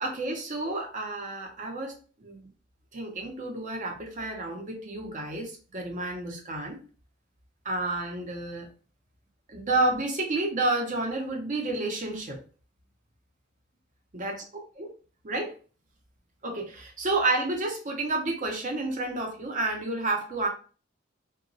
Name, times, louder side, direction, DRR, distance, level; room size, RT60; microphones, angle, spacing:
voice 1, 0.0-1.9 2.2-2.5 2.9-6.8 7.6-8.7 9.5-12.4 14.1-14.4 14.8-14.9 15.2-15.5 16.4-20.5, right 2 dB, 45° right, 2 dB, 0.7 m, -30 dB
2.9 x 2.2 x 2.6 m, 0.38 s
head